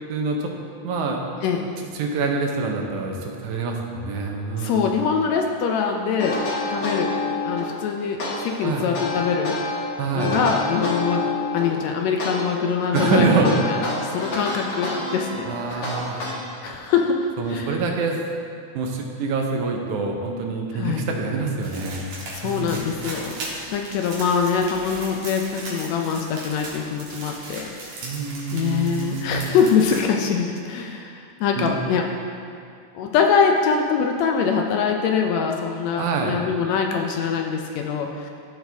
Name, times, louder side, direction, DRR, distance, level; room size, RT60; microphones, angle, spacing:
voice 1, 0.1-0.5 0.8-1.2 1.9-4.9 8.6-8.9 10.0-10.4 12.9-13.5 15.5-16.3 17.4-18.2 18.7-22.2 22.4-22.7 28.0-29.5 31.6-31.8 36.0-36.4, right 4 dB, 80° right, 1 dB, 2.3 m, -25 dB
voice 2, 4.6-6.4 6.7-7.1 7.4-9.5 10.1-11.2 11.5-15.9 16.6-17.8 20.7-21.0 22.3-23.4 23.7-28.0 28.5-32.1 32.9-38.3, left 6 dB, 80° left, 2 dB, 1.7 m, -23 dB
sound 1, 6.2-7.7 8.2-9.8 10.2-11.7 12.2-16.7, left 3 dB, 55° left, 1.9 m, -28 dB
sound 2, 21.6-30.0, right 2 dB, 65° right, 2.6 m, -37 dB
13.5 x 4.5 x 3.4 m, 2.4 s
omnidirectional pair, 3.4 m